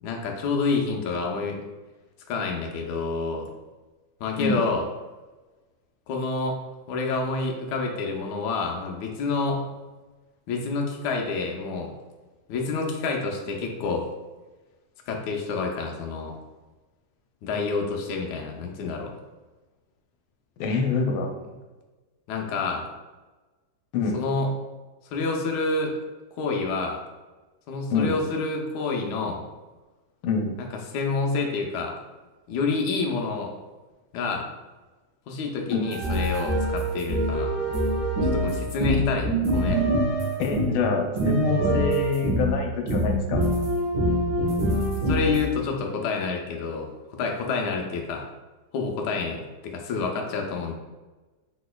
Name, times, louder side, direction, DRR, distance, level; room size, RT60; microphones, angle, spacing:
voice 1, 0.0-1.6 2.3-3.5 4.2-4.8 6.1-6.6 6.9-9.6 10.5-11.9 12.5-14.0 15.1-16.3 17.4-19.1 22.3-22.9 24.1-24.5 25.1-25.9 26.4-27.0 27.7-29.4 30.6-30.7 30.9-31.9 32.5-33.5 34.1-34.5 35.3-37.7 38.2-39.8 45.1-48.3 48.7-50.8, left 4 dB, 70° left, 1 dB, 1.1 m, -28 dB
voice 2, 20.6-21.3 23.9-24.2 27.9-28.1 30.2-30.6 35.7-35.9 40.4-43.5, left 4 dB, 85° left, 3 dB, 1.5 m, -25 dB
sound 1, 35.8-40.8 41.2-42.5 42.9-45.4, right 1 dB, 65° right, 2.0 m, -25 dB
5.1 x 4.1 x 2.2 m, 1.2 s
omnidirectional pair, 2.2 m